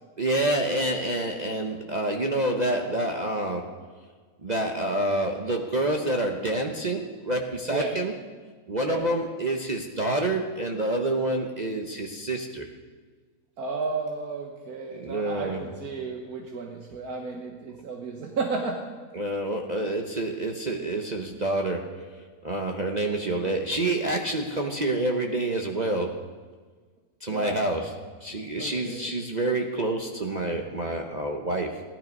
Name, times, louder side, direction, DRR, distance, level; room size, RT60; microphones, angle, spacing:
voice 1, 0.2-3.9 4.4-8.1 8.7-12.7 14.9-15.7 19.1-26.3 27.2-31.8, right 1 dB, 35° right, 2 dB, 0.9 m, -28 dB
voice 2, 13.6-18.8 27.3-27.7 28.6-29.1, right 4 dB, 85° right, 2 dB, 1.8 m, -33 dB
16.0 x 12.0 x 5.3 m, 1.5 s
omnidirectional pair, 1.5 m